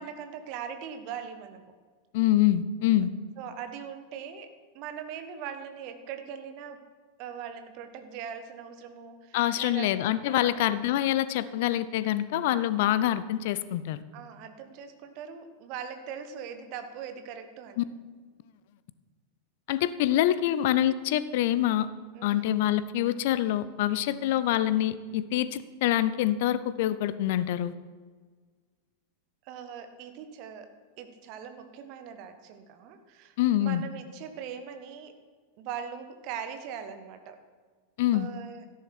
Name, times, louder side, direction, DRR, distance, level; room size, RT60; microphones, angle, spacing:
voice 1, 0.0-1.7 3.4-6.9 7.2-10.0 10.3-10.7 14.1-17.9 22.1-22.5 29.4-35.2 35.6-37.4 38.1-38.6, right 7 dB, 45° right, 8 dB, 1.3 m, -41 dB
voice 2, 2.1-3.1 9.3-14.0 17.8-17.9 19.7-21.9 22.2-27.7 33.4-33.8 38.0-38.3, left 12 dB, 50° left, 15 dB, 0.6 m, -25 dB
13.0 x 11.0 x 4.5 m, 1.5 s
figure-of-eight pair, 90°, 0 cm